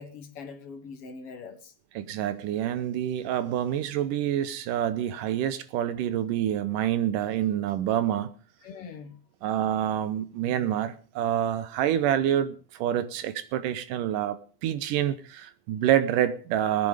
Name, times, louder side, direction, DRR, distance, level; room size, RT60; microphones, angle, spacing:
voice 1, 0.0-1.7 8.6-9.2, left 5 dB, 55° left, 1.7 m, -42 dB
voice 2, 2.0-8.3 9.4-16.9, right 11 dB, 75° right, 2.2 m, -27 dB
20.5 x 9.6 x 5.0 m
omnidirectional pair, 4.4 m